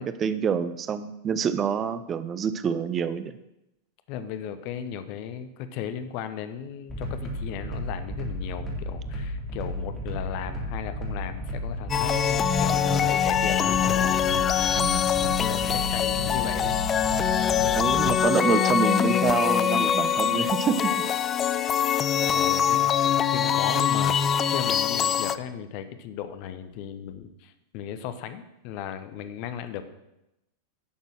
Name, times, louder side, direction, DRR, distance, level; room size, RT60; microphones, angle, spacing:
voice 1, 0.0-3.3 14.8-15.1 17.8-21.0, right 6 dB, 25° right, 13 dB, 0.6 m, -27 dB
voice 2, 4.1-14.1 15.1-16.8 18.0-18.2 22.3-29.8, left 9 dB, 45° left, 10 dB, 1.0 m, -36 dB
sound 1, 6.9-18.1, equal, 5° left, 3.3 m, -33 dB
sound 2, 11.9-25.4, left 9 dB, 25° left, 0.4 m, -23 dB
11.0 x 6.7 x 6.2 m, 0.90 s
figure-of-eight pair, 90°, 0 cm